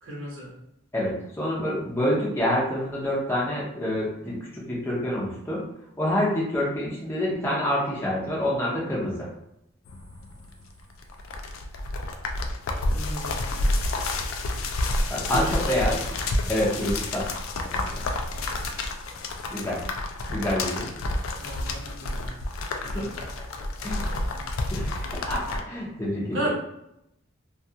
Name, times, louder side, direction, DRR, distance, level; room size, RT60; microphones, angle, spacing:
voice 1, 0.0-0.5 12.8-13.4 15.3-15.7 18.3-18.5 19.4-19.6 21.4-22.3 22.8-23.2 23.9-24.5 26.2-26.5, right 1 dB, 85° right, -4 dB, 0.9 m, -35 dB
voice 2, 0.9-5.6 6.0-9.3 15.1-16.0 16.5-17.3 17.7-18.0 19.5-19.8 20.3-20.9 22.8-23.1 23.8-24.1 24.7-26.5, left 1 dB, 10° left, -6 dB, 0.6 m, -27 dB
sound 1, 9.9-25.6, left 2 dB, 85° left, 0.4 m, -29 dB
2.3 x 2.3 x 2.7 m, 0.80 s
head